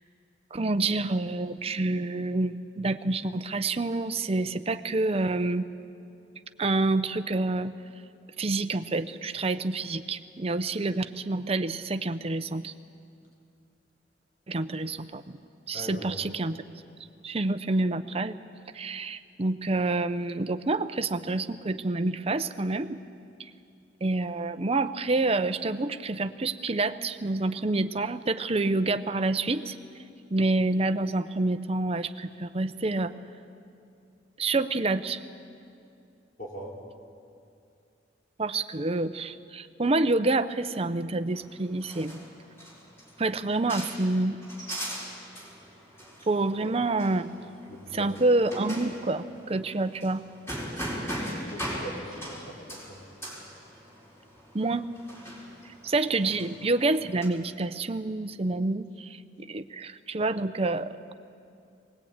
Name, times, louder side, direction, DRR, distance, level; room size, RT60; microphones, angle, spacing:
voice 1, 0.5-5.7 6.6-7.7 8.4-12.7 14.5-15.4 15.7-16.6 17.2-18.4 18.7-23.0 24.0-29.8 30.3-33.1 34.4-35.2 38.4-42.2 43.2-44.4 46.3-47.3 47.9-50.2 54.5-54.9 55.8-61.0, right 2 dB, 35° right, 11 dB, 0.7 m, -28 dB
voice 2, 15.7-16.2 36.4-36.7 46.6-46.8 47.7-48.1 51.3-53.0, right 1 dB, 50° left, -3 dB, 4.7 m, -41 dB
sound 1, 41.3-57.3, equal, 15° left, 4.3 m, -40 dB
21.5 x 19.5 x 8.8 m, 2.5 s
head